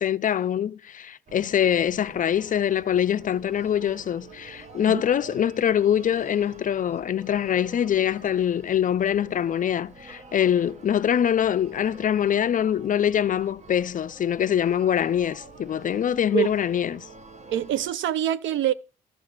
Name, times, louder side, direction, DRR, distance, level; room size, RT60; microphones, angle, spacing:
voice 1, 0.0-17.1, left 9 dB, 40° left, 0.4 m, -24 dB
sound 1, 1.3-17.9, right 3 dB, 35° right, 1.0 m, -47 dB
voice 2, 17.5-18.7, right 11 dB, 75° right, 0.6 m, -25 dB
12.5 x 4.7 x 6.5 m
cardioid pair, 90°, 20 cm